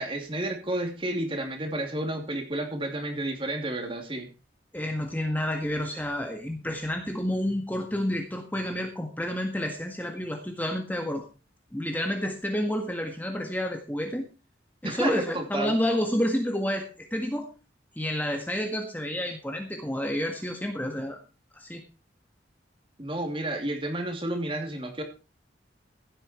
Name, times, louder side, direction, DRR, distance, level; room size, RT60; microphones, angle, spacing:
voice 1, 0.0-4.3 14.8-15.8 23.0-25.0, right 1 dB, 30° right, 4 dB, 2.8 m, -31 dB
voice 2, 4.7-11.3 11.7-14.3 14.8-17.5 17.9-21.2 21.5-21.8, equal, 10° left, 3 dB, 1.7 m, -29 dB
15.5 x 9.0 x 4.5 m, 0.32 s
head